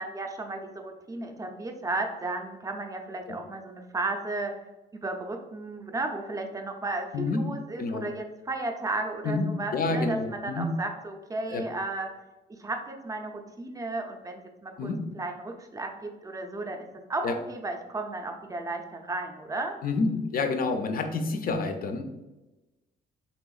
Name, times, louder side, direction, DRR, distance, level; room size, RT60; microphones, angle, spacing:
voice 1, 0.0-4.5 4.9-12.1 12.5-19.8, right 2 dB, 15° right, 3 dB, 0.4 m, -34 dB
voice 2, 9.2-10.7 11.5-11.6 14.8-15.1 17.2-17.3 19.8-22.0, left 3 dB, 45° left, 6 dB, 0.4 m, -28 dB
3.4 x 2.9 x 2.3 m, 1.1 s
cardioid pair, 90°, 20 cm